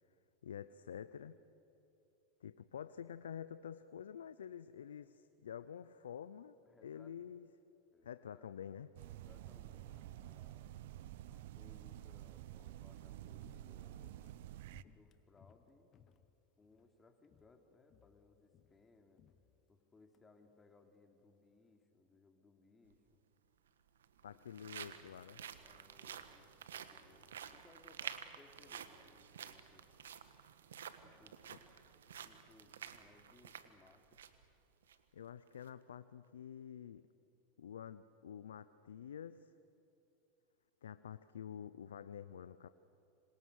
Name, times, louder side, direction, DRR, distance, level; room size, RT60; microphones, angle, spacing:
voice 1, 0.4-1.4 2.4-6.6 6.8-7.5 8.0-8.9 24.2-25.4 31.5-31.6 35.1-37.1 37.6-39.5 40.8-42.7, left 8 dB, 90° left, 13 dB, 0.6 m, -48 dB
voice 2, 6.6-7.1 7.9-8.5 9.1-10.7 11.3-14.1 14.8-15.9 16.6-19.2 19.7-23.2 24.3-24.5 25.6-29.9 31.0-31.4 32.2-34.2, left 3 dB, 20° left, 4 dB, 3.2 m, -66 dB
sound 1, 9.0-14.8, right 13 dB, 70° right, 0.7 m, -50 dB
Walk footsteps, 12.6-17.0 17.2-17.6 17.9-20.2 20.5-20.6, left 8 dB, 40° left, 1.5 m, -67 dB
sound 2, 22.9-23.0 23.9-34.4 34.8-35.0 35.5-35.7, right 8 dB, 85° right, 1.4 m, -51 dB
26.5 x 26.5 x 6.5 m, 2.9 s
hypercardioid pair, 100°, 0 cm